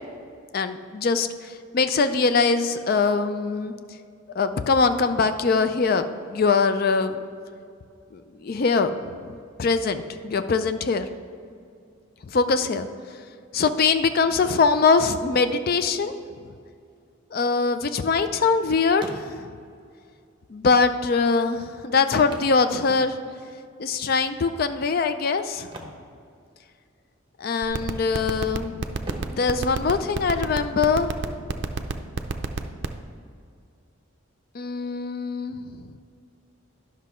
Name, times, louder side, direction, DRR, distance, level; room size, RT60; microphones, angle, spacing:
voice 1, 0.5-3.7 4.4-7.2 8.1-8.9 9.2-9.3 9.6-11.1 12.2-12.9 13.5-16.1 17.3-19.5 20.5-23.2 23.8-25.7 27.4-28.8 29.4-31.1 34.5-35.9, left 4 dB, 45° left, 10 dB, 0.4 m, -22 dB
sound 1, 17.6-18.6 18.9-19.7 20.6-20.7 21.0-21.1 22.3-23.5 25.6-26.9 27.1-27.4 27.9-28.5 29.0-30.7 32.7-32.8 33.2-33.3, right 1 dB, 20° right, 0.9 m, -43 dB
sound 2, 27.6-33.0, right 4 dB, 55° right, 0.5 m, -26 dB
10.0 x 6.0 x 4.3 m, 2.3 s
head